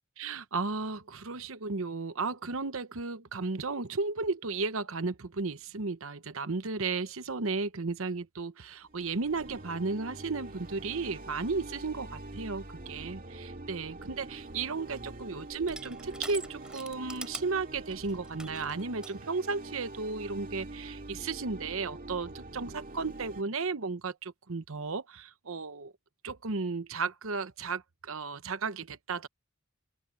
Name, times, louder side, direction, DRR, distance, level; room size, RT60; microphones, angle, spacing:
voice 1, 0.2-25.9 26.2-29.3, right 4 dB, 65° right, 0.9 m, -34 dB
sound 1, 8.8-23.4, right 2 dB, 40° right, 2.1 m, -45 dB
Crushing, 14.3-19.2, right 1 dB, 5° right, 5.3 m, -46 dB
open air
head